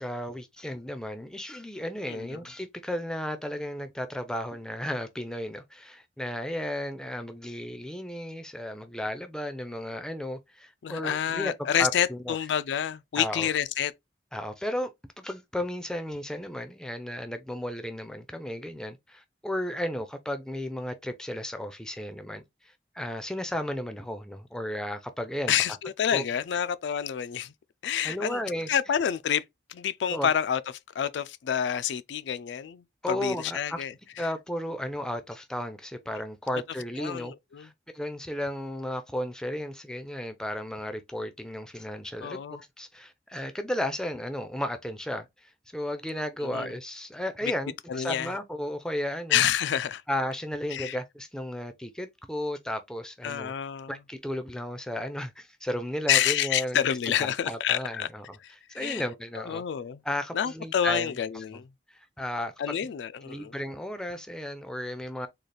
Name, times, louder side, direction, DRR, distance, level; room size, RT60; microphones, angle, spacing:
voice 1, 0.0-11.5 11.8-12.4 13.2-13.5 14.3-14.9 15.2-25.5 26.1-26.2 28.0-28.7 30.1-30.3 33.0-33.8 34.2-37.3 37.6-42.4 42.8-49.4 50.1-53.5 53.9-58.4 58.7-59.6 60.0-61.2 61.5-61.6 61.9-62.8 63.3-65.3, left 1 dB, 5° left, 0.4 m, -34 dB
voice 2, 2.0-2.4 10.8-13.9 25.5-27.5 27.8-28.4 28.7-29.4 29.7-30.6 31.0-34.3 37.0-37.7 42.2-42.6 46.4-46.7 47.4-47.5 47.9-48.3 49.3-50.0 50.7-51.0 53.2-54.0 56.1-58.1 58.4-59.0 59.4-60.0 60.3-61.7 62.6-63.5, left 9 dB, 90° left, 0.3 m, -28 dB
3.9 x 2.4 x 3.2 m
head